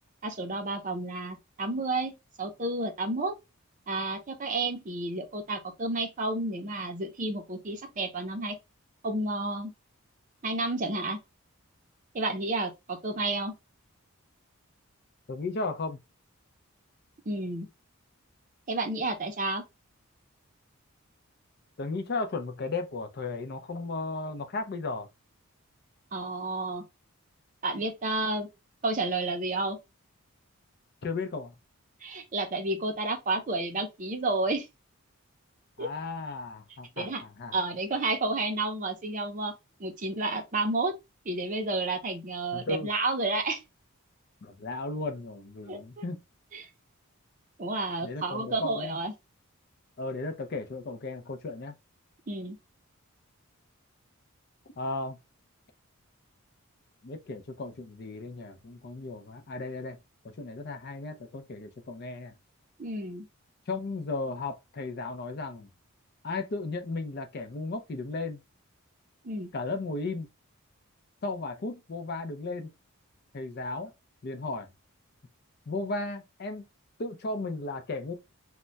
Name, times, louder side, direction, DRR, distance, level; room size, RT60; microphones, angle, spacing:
voice 1, 0.2-3.3 3.9-8.6 9.0-9.7 10.4-11.2 12.1-13.5 17.3-17.7 18.7-19.6 26.1-26.8 27.6-28.5 28.8-29.8 32.0-34.7 35.8-35.9 37.0-37.2 37.5-39.5 39.8-40.9 41.2-43.6 45.7-46.0 46.5-46.7 47.6-49.1 52.3-52.6 62.8-63.3 69.2-69.5, right 2 dB, 35° right, 0.5 m, -31 dB
voice 2, 15.3-16.0 21.8-25.1 31.0-31.5 35.8-37.5 42.5-42.9 44.4-46.2 48.0-49.0 50.0-51.7 54.8-55.2 57.0-60.0 60.2-62.3 63.7-65.7 66.2-68.4 69.5-70.3 71.2-72.7 73.3-73.9 74.2-74.7 75.7-76.7 77.0-78.1, left 3 dB, 45° left, 0.4 m, -35 dB
2.2 x 2.2 x 3.7 m
head